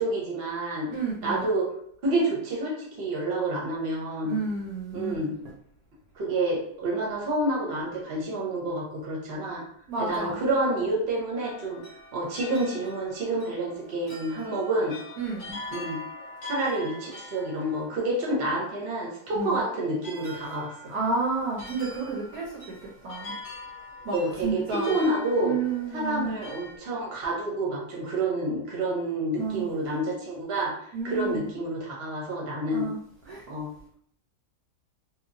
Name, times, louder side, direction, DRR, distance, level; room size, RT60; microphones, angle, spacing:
voice 1, 0.0-0.9 1.2-1.7 2.0-4.4 4.9-5.3 6.2-9.6 10.0-11.8 12.1-15.0 15.7-16.0 16.4-20.7 24.1-25.6 25.9-32.9 33.5-33.7, right 1 dB, 45° right, -2 dB, 0.8 m, -28 dB
voice 2, 0.9-1.5 4.2-5.2 9.9-10.4 15.2-15.6 19.4-19.6 20.9-22.7 23.0-23.3 24.0-24.2 24.4-24.9 25.4-26.3 29.4-29.6 30.9-31.4 32.7-33.0 33.3-33.4, right 4 dB, 70° right, -2 dB, 1.0 m, -30 dB
sound 1, 11.4-26.8, left 2 dB, 55° left, 0.7 m, -44 dB
2.9 x 2.3 x 2.5 m, 0.64 s
omnidirectional pair, 1.8 m